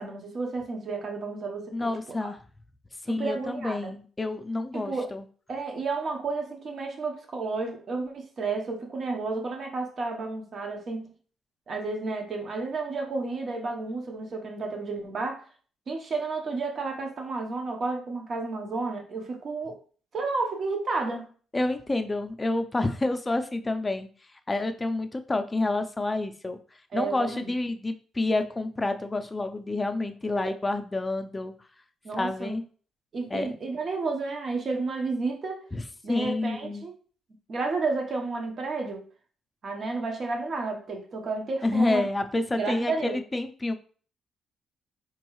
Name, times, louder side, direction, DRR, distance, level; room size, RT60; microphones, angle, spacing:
voice 1, 0.0-2.3 3.1-3.9 4.7-5.1 5.5-11.1 11.7-15.4 15.9-19.8 20.1-21.3 26.9-27.5 30.3-30.5 32.0-32.6 33.1-35.6 36.0-36.9 37.5-39.0 39.6-42.0 42.5-43.2, right 3 dB, 50° right, 2 dB, 1.0 m, -31 dB
voice 2, 1.7-2.4 3.0-5.2 21.5-24.1 24.5-26.6 26.9-31.5 32.1-32.6 33.3-33.5 35.7-35.8 36.1-36.9 41.6-43.7, left 2 dB, 20° left, 7 dB, 0.5 m, -28 dB
4.5 x 3.1 x 3.1 m, 0.42 s
cardioid pair, 90°, 0 cm